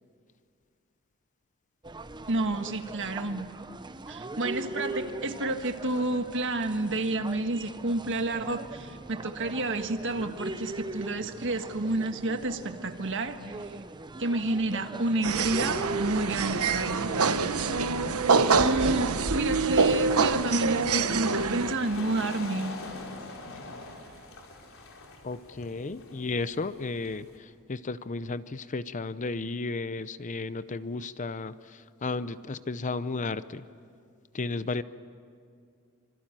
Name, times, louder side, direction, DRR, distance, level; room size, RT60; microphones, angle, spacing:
sound 1, 1.8-17.9, right 2 dB, 20° right, 0.8 m, -40 dB
voice 1, 2.3-3.5 4.1-13.8 14.2-17.3 18.6-22.8, right 2 dB, 55° right, 7 dB, 1.6 m, -30 dB
sound 2, 15.2-21.7, right 4 dB, 80° right, 1.1 m, -26 dB
sound 3, 18.3-27.4, left 1 dB, 65° left, 4.4 m, -42 dB
voice 2, 25.2-33.7 34.3-34.8, left 3 dB, 35° left, 14 dB, 0.6 m, -33 dB
26.0 x 25.0 x 9.1 m, 2.3 s
head